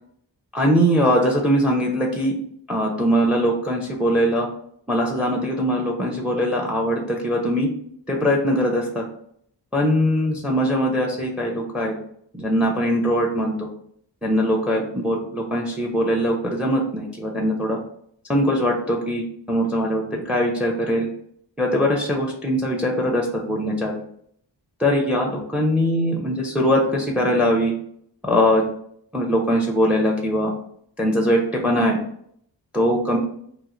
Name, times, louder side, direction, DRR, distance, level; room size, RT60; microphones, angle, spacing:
voice 1, 0.5-2.3 2.7-4.5 4.9-7.7 8.1-9.0 9.7-11.9 12.3-13.7 14.2-17.8 18.3-21.1 21.6-23.9 24.8-27.7 28.2-28.6 29.1-30.5 31.0-32.0 32.7-33.2, equal, 5° right, 1 dB, 0.7 m, -21 dB
2.8 x 2.1 x 3.7 m, 0.66 s
cardioid pair, 40°, 45 cm